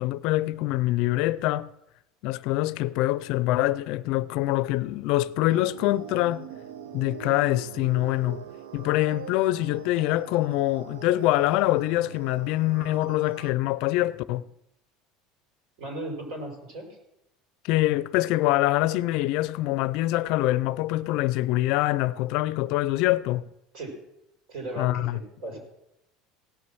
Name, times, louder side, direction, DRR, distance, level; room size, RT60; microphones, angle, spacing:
voice 1, 0.0-1.7 2.2-6.5 6.9-8.4 8.7-14.5 17.6-23.5 24.8-25.2, left 16 dB, 65° left, 0.4 m, -25 dB
sound 1, 5.5-13.5, right 8 dB, 90° right, 0.7 m, -43 dB
voice 2, 15.8-16.9 23.7-24.0 24.5-25.6, right 1 dB, 65° right, 5.2 m, -36 dB
17.5 x 6.3 x 6.1 m
supercardioid pair, 120°, 0 cm